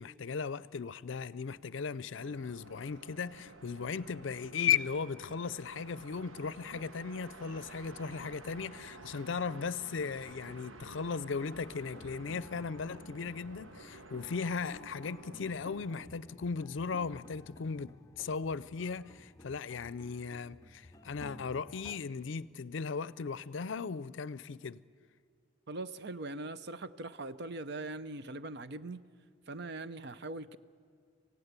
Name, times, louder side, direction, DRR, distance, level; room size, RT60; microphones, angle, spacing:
voice 1, 0.0-24.8, left 6 dB, 70° left, 0.5 m, -37 dB
sound 1, 2.1-16.1, right 2 dB, 85° right, 1.2 m, -52 dB
sound 2, 8.4-14.6 15.0-15.7 16.9-17.4 17.6-17.7 18.0-18.3 19.1-20.0 20.5-20.6, left 1 dB, 35° right, 5.2 m, -62 dB
sound 3, 11.9-22.0, left 1 dB, 15° left, 0.6 m, -54 dB
voice 2, 25.7-29.0 29.5-30.6, right 2 dB, 55° right, 0.7 m, -41 dB
27.0 x 16.5 x 8.2 m
head